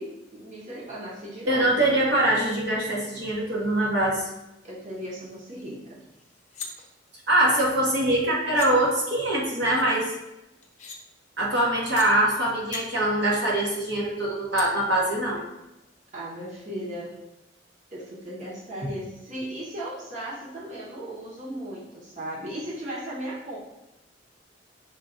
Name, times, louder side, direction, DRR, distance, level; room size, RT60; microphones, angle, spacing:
voice 1, 0.0-1.9 4.6-6.0 16.1-17.1 17.9-23.6, right 1 dB, 40° right, -6 dB, 1.0 m, -36 dB
voice 2, 1.5-4.2 7.3-10.1 11.4-15.4, right 1 dB, 60° right, -4 dB, 1.1 m, -23 dB
sound 1, 5.6-5.7 6.0-6.7 8.1-8.2 8.5-8.7 9.7-9.9 10.6-11.0 12.0-12.1 12.5-12.8 14.6-14.7, left 5 dB, 35° left, 0.6 m, -39 dB
5.5 x 2.5 x 3.8 m, 0.95 s
head